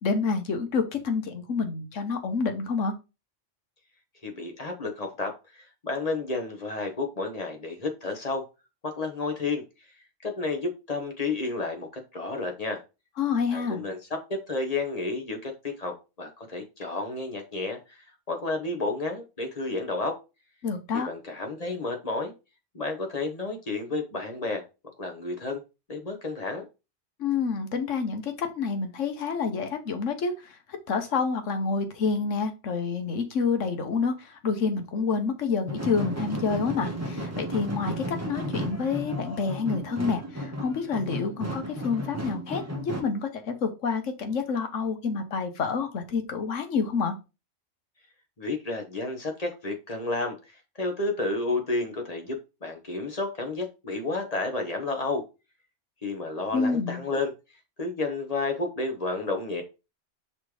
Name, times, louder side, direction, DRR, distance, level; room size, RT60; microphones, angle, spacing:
voice 1, 0.0-2.9 13.2-13.8 20.6-21.1 27.2-30.5 30.9-47.2 56.5-57.0, left 5 dB, 80° left, 1.4 m, -28 dB
voice 2, 4.2-8.5 8.8-9.6 10.2-12.8 13.5-20.2 20.9-22.3 22.7-24.6 25.0-25.6 25.9-26.7 48.4-50.4 50.8-55.2 56.0-57.3 57.8-59.6, left 3 dB, 35° left, 1.2 m, -31 dB
sound 1, 35.7-43.0, equal, 15° right, 1.0 m, -34 dB
5.7 x 3.3 x 4.9 m
omnidirectional pair, 1.3 m